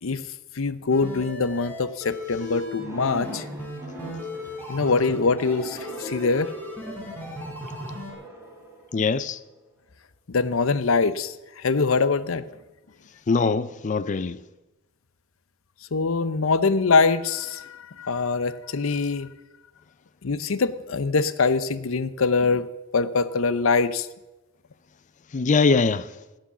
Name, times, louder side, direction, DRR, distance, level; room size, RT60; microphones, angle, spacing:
voice 1, 0.5-3.4 4.7-6.5 10.3-12.4 15.9-19.3 20.2-22.7 22.9-24.1, left 4 dB, 80° left, 0.7 m, -23 dB
sound 1, 0.9-8.1, left 1 dB, 10° left, 3.7 m, -36 dB
Broken Piano, 2.8-7.3 8.1-9.6, equal, 15° right, 4.2 m, -42 dB
voice 2, 8.9-9.4 13.3-14.4 25.3-26.1, left 4 dB, 40° left, 0.4 m, -22 dB
15.5 x 8.8 x 7.2 m
head